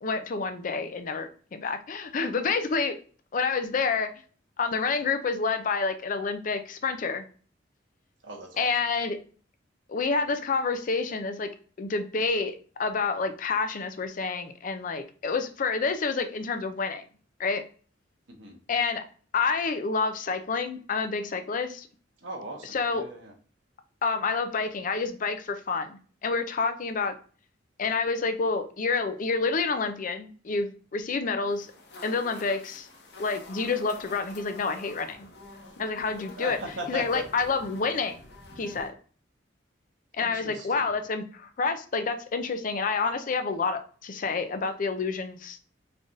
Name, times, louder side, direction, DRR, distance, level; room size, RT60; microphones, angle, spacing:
voice 1, 0.0-3.0 3.3-4.1 4.6-7.2 8.6-9.2 9.9-11.5 11.8-17.0 17.4-17.6 18.7-19.0 19.3-21.9 22.6-23.1 24.0-27.2 27.8-31.7 32.0-32.9 33.2-35.3 35.8-36.6 36.9-38.2 38.6-38.9 40.1-45.6, left 4 dB, 45° left, 8 dB, 0.4 m, -28 dB
voice 2, 8.2-8.7 18.3-18.6 22.2-23.3 36.4-37.2 40.2-40.9, right 1 dB, 75° right, 0 dB, 1.1 m, -38 dB
sound 1, 31.5-38.9, left 2 dB, 60° left, 0.9 m, -47 dB
3.8 x 3.3 x 2.6 m, 0.42 s
head